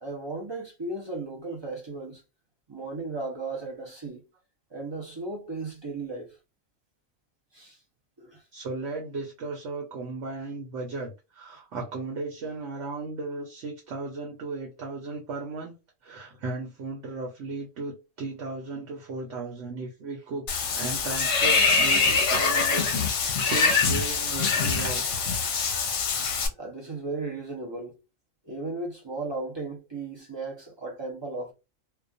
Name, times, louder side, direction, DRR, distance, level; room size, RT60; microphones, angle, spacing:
voice 1, 0.0-2.2 2.7-4.2 4.7-6.4 7.5-7.8 8.2-8.4 26.6-28.0 28.4-31.5, right 3 dB, 45° right, 0.3 m, -35 dB
voice 2, 8.5-15.7 16.0-20.5 20.7-25.6, right 3 dB, 65° right, 1.0 m, -36 dB
Water / Bathtub (filling or washing), 20.5-26.5, left 4 dB, 65° left, 0.8 m, -24 dB
2.3 x 2.2 x 2.5 m
omnidirectional pair, 1.4 m